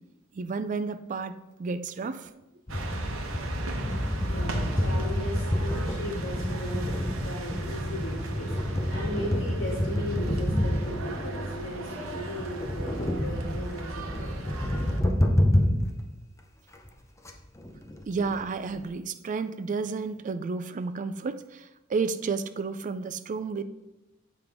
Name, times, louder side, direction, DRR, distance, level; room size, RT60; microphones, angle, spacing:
voice 1, 0.3-2.3 18.1-23.6, right 4 dB, 40° right, 11 dB, 0.4 m, -31 dB
sound 1, 2.7-15.9 16.4-16.5 16.7-16.9 17.2-17.3 17.6-18.9, left 1 dB, 15° left, 0.6 m, -29 dB
sound 2, 2.7-15.0, right 2 dB, 85° right, 0.9 m, -39 dB
voice 2, 4.2-14.5, equal, 70° left, -7 dB, 2.5 m, -37 dB
7.6 x 5.1 x 3.5 m, 0.95 s
head